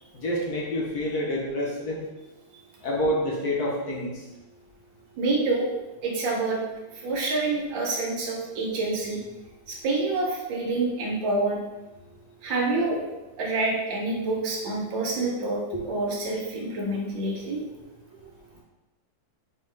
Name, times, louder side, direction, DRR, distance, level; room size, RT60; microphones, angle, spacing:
voice 1, 0.1-2.0 2.8-4.1, left 1 dB, 65° left, -2 dB, 1.1 m, -27 dB
voice 2, 5.2-5.7 6.0-6.6 6.9-9.2 9.7-11.6 12.4-13.0 13.4-17.6, right 2 dB, 70° right, -2 dB, 1.4 m, -27 dB
4.4 x 2.9 x 3.2 m, 1.1 s
omnidirectional pair, 2.2 m